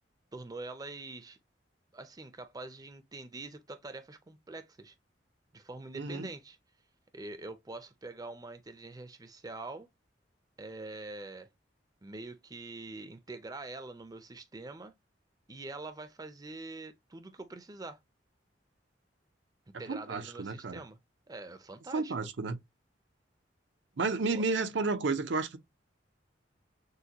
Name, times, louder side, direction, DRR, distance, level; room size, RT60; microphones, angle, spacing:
voice 1, 0.3-1.4 1.9-4.9 5.5-6.6 7.1-9.9 10.6-11.5 12.0-15.0 15.5-18.0 19.8-21.0 21.3-22.1 24.3-24.4, right 2 dB, 20° right, 0.5 m, -44 dB
voice 2, 5.9-6.3 19.9-20.8 21.9-22.6 24.0-25.6, right 3 dB, 80° right, 0.6 m, -31 dB
6.5 x 2.2 x 2.8 m
head